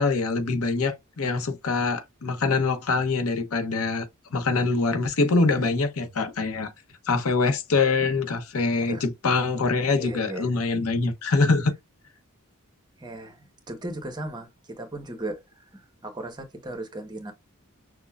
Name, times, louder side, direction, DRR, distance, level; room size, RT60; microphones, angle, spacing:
voice 1, 0.0-6.7 7.1-11.7, left 3 dB, 85° left, 0.8 m, -24 dB
voice 2, 10.0-10.5 13.0-15.4 15.7-17.3, right 1 dB, 20° right, 1.0 m, -36 dB
6.2 x 2.1 x 2.3 m
head